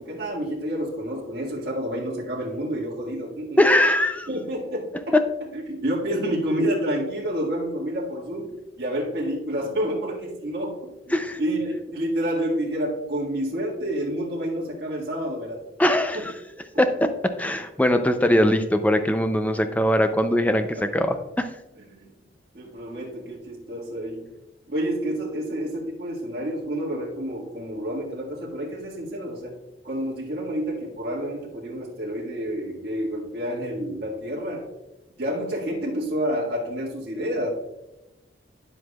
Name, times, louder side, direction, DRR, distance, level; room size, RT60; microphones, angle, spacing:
voice 1, 0.0-3.6 4.3-5.2 5.7-10.8 11.4-15.6 16.1-16.3 16.7-16.8 20.5-20.9 21.1-21.2 21.9-22.1 22.5-24.3 24.7-29.5 29.8-34.7 35.2-37.5, equal, 55° right, -4 dB, 1.7 m, -29 dB
voice 2, 3.6-4.3 5.1-5.2 11.1-11.4 15.8-16.3 16.8-21.5, left 1 dB, 10° left, 8 dB, 0.4 m, -21 dB
10.0 x 7.6 x 2.3 m, 0.97 s
head